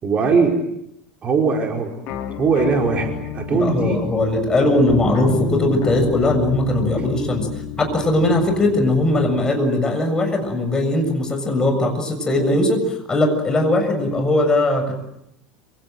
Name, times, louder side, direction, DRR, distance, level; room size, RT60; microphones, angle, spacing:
voice 1, 0.0-0.6 1.2-2.0 2.4-4.1 4.5-4.7, right 5 dB, 30° right, 2 dB, 5.0 m, -20 dB
sound 1, 2.1-9.5, left 7 dB, 50° left, 2.7 m, -30 dB
voice 2, 3.5-7.5 7.8-14.9, left 1 dB, 20° left, 5 dB, 7.2 m, -19 dB
27.0 x 26.5 x 7.9 m, 0.80 s
figure-of-eight pair, 75°, 4 cm